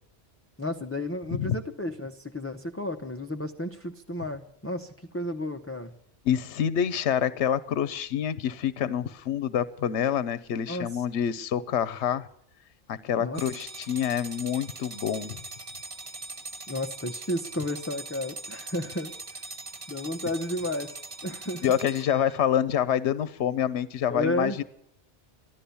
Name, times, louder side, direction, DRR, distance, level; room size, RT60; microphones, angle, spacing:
voice 1, 0.6-5.9 10.7-11.1 13.2-13.4 16.7-19.1 19.9-20.9 21.2-21.8 24.1-24.6, left 1 dB, 15° left, 5 dB, 0.7 m, -32 dB
voice 2, 6.3-12.3 12.9-15.4 21.6-24.6, left 9 dB, 75° left, 16 dB, 1.0 m, -27 dB
sound 1, 13.3-22.4, right 3 dB, 35° right, 0.9 m, -41 dB
14.5 x 11.5 x 6.9 m, 0.71 s
omnidirectional pair, 1.2 m